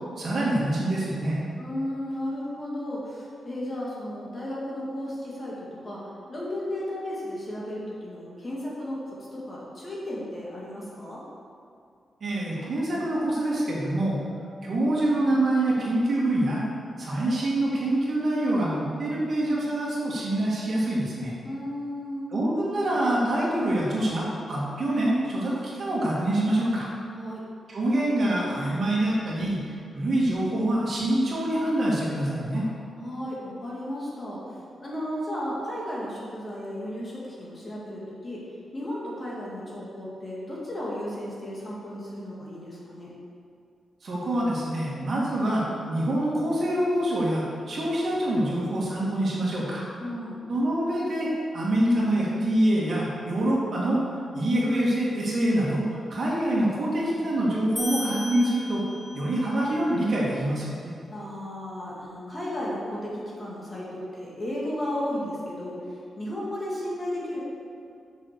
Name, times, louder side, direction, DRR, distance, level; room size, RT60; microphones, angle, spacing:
voice 1, 0.2-1.4 12.2-14.2 14.6-16.6 17.0-21.3 22.3-26.9 27.7-32.6 44.0-49.8 50.5-54.0 54.3-58.8 59.1-60.9, right 1 dB, 45° right, -5 dB, 2.2 m, -25 dB
voice 2, 1.6-11.2 21.4-22.3 27.1-27.4 32.5-32.7 33.0-34.5 34.8-38.4 38.7-43.1 50.0-50.4 61.1-67.4, left 1 dB, 25° left, -6 dB, 2.1 m, -34 dB
sound 1, 57.8-59.4, left 2 dB, 10° left, 1.6 m, -35 dB
7.6 x 6.3 x 6.7 m, 2.4 s
wide cardioid pair, 165°, 0 cm